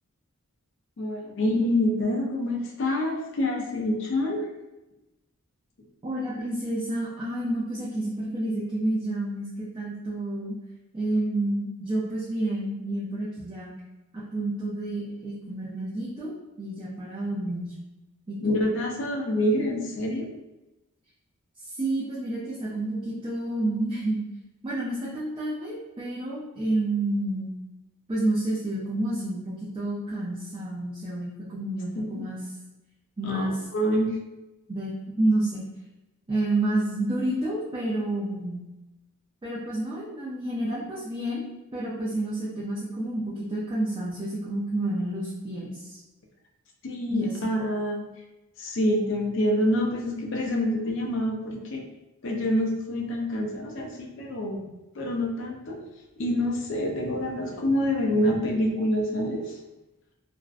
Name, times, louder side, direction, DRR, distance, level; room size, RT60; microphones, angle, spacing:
voice 1, 1.0-4.5 18.4-20.3 32.0-32.2 33.2-34.2 46.8-48.0 48.6-51.8 52.2-54.6 54.9-55.8 56.2-59.6, left 1 dB, 55° left, 0 dB, 0.4 m, -26 dB
voice 2, 6.0-9.5 9.7-10.5 10.9-13.7 14.1-17.7 18.3-18.6 21.6-24.2 24.6-27.5 28.1-32.4 33.2-33.6 34.7-35.7 36.3-38.7 39.4-41.4 41.7-46.0 47.1-47.3, right 1 dB, 20° right, -8 dB, 0.3 m, -29 dB
2.5 x 2.0 x 2.4 m, 1.0 s
head